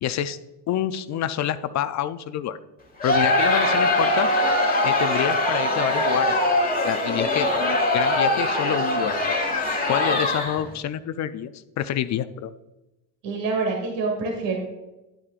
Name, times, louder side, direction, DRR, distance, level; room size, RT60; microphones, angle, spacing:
voice 1, 0.0-0.4 0.7-2.6 3.0-4.3 4.8-6.4 6.8-9.4 9.9-11.5 11.8-12.5, left 10 dB, 40° left, 13 dB, 0.5 m, -27 dB
Crowd, 3.0-10.7, left 1 dB, 20° left, 1.8 m, -22 dB
voice 2, 13.2-14.6, right 4 dB, 65° right, 1 dB, 2.3 m, -26 dB
10.5 x 8.6 x 2.4 m, 1.0 s
supercardioid pair, 90°, 47 cm